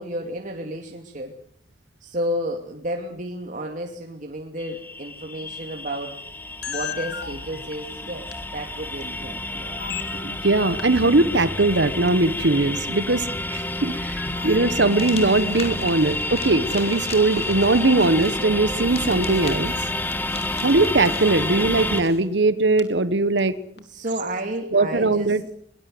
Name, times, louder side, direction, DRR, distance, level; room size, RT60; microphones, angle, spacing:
voice 1, 0.0-1.4 2.0-6.2 6.7-9.8 20.2-20.6 23.8-25.3, equal, 45° right, 2 dB, 2.8 m, -32 dB
sound 1, 4.6-22.0, left 1 dB, 10° left, 1.7 m, -29 dB
sound 2, 6.6-8.3 9.0-9.1 9.8-10.5 10.8-11.0 11.9-12.1 12.6-12.8 14.2-16.3 16.7-17.0 18.1-18.2 19.0-19.1 19.3-19.8 20.1-20.2 20.4-20.5 21.3-21.4 22.8-22.9 23.4-23.5 23.8-23.9, left 7 dB, 70° left, 3.2 m, -37 dB
voice 2, 10.1-19.8 20.6-23.5 24.7-25.4, right 2 dB, 75° right, 14 dB, 1.2 m, -20 dB
sound 3, 14.7-22.2, left 4 dB, 35° left, 5.1 m, -40 dB
22.0 x 21.0 x 7.8 m, 0.64 s
head